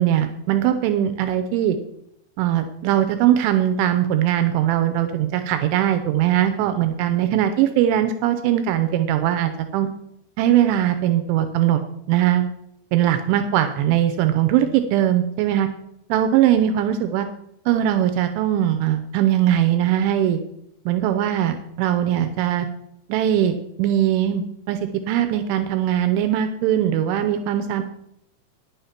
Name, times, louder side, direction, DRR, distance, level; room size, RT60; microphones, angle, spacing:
voice 1, 0.0-1.8 2.4-9.9 10.4-11.8 12.1-12.5 12.9-15.7 16.1-17.3 17.7-20.4 20.9-22.7 23.1-24.8 25.1-27.8, right 11 dB, 85° right, 9 dB, 3.0 m, -20 dB
10.5 x 7.0 x 5.7 m, 0.78 s
omnidirectional pair, 5.4 m